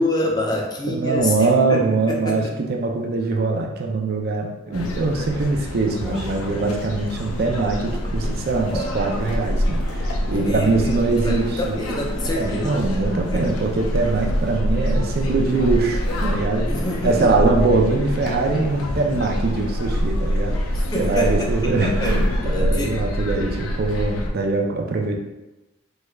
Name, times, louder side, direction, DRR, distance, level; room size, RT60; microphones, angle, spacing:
voice 1, 0.0-2.5 10.3-12.8 13.3-13.5 16.7-17.5 20.7-23.0, left 1 dB, 20° left, -1 dB, 0.4 m, -27 dB
voice 2, 0.9-11.8 12.2-16.7 17.0-20.6 21.0-22.2 22.5-25.2, right 3 dB, 45° right, 1 dB, 0.4 m, -22 dB
sound 1, 4.7-24.3, equal, 90° left, 0.5 m, -25 dB
Brushing Hair, 4.7-10.1 11.0-12.3 13.5-13.7 14.0-15.1 15.4-17.6, right 1 dB, ahead, 1.0 m, -40 dB
3.2 x 3.1 x 2.3 m, 1.0 s
head